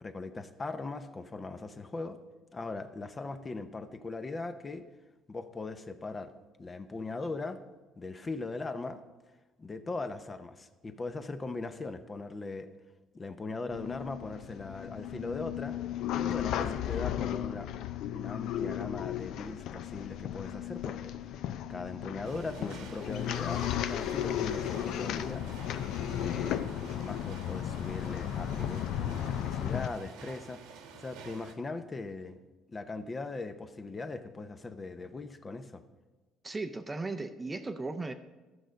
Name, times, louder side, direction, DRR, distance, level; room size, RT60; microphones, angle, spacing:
voice 1, 0.0-2.2 2.5-4.9 5.3-6.3 6.6-7.6 8.0-9.0 9.6-12.7 13.1-15.8 16.1-17.7 18.1-21.1 21.7-25.5 25.9-30.6 30.9-32.4 32.7-35.8, left 3 dB, 25° left, 10 dB, 0.6 m, -39 dB
sound 1, 13.7-29.9, left 10 dB, 65° left, 0.5 m, -35 dB
sound 2, 22.2-31.5, right 6 dB, 90° right, 1.2 m, -50 dB
voice 2, 36.4-38.1, right 3 dB, 20° right, 8 dB, 0.5 m, -36 dB
13.0 x 6.4 x 5.1 m, 1.2 s
cardioid pair, 115°, 0 cm